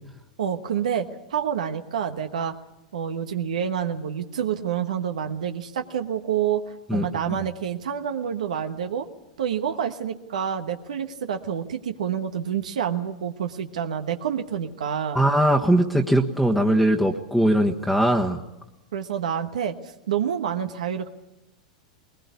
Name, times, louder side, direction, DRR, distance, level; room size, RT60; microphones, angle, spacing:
voice 1, 0.4-2.6 2.9-6.6 6.9-9.1 9.4-15.2 18.9-19.8 20.1-21.1, right 8 dB, 80° right, 6 dB, 1.3 m, -28 dB
voice 2, 6.9-7.4 15.1-18.4, right 1 dB, ahead, -1 dB, 1.4 m, -21 dB
21.0 x 20.0 x 8.4 m, 0.96 s
hypercardioid pair, 100°, 4 cm